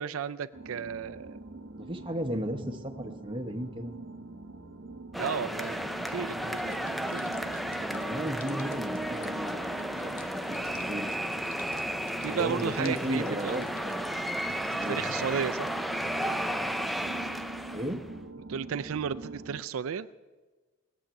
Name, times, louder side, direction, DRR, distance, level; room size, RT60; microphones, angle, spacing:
voice 1, 0.0-1.4 5.2-7.3 12.2-13.7 14.9-15.7 18.5-20.1, right 7 dB, 80° right, 11 dB, 0.4 m, -34 dB
sound 1, 0.5-19.6, right 2 dB, 65° right, 1.0 m, -44 dB
voice 2, 1.8-3.9 7.8-10.4 10.7-11.1 12.3-14.2 14.8-15.0 17.7-18.0, equal, 25° right, 5 dB, 1.0 m, -35 dB
sound 2, 5.1-18.1, equal, ahead, 0.4 m, -33 dB
sound 3, 6.6-14.9, left 7 dB, 85° left, 1.0 m, -52 dB
19.5 x 7.3 x 9.0 m, 1.3 s
head